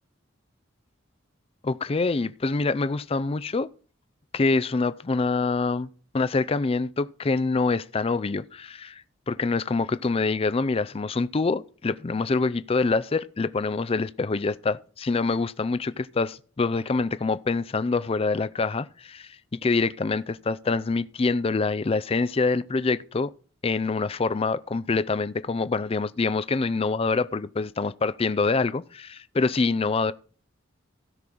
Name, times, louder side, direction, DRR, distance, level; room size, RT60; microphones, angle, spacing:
voice 1, 1.6-3.7 4.3-5.9 6.1-19.4 19.6-23.3 23.6-30.1, left 3 dB, 30° left, 0.4 m, -25 dB
16.5 x 6.1 x 3.9 m
head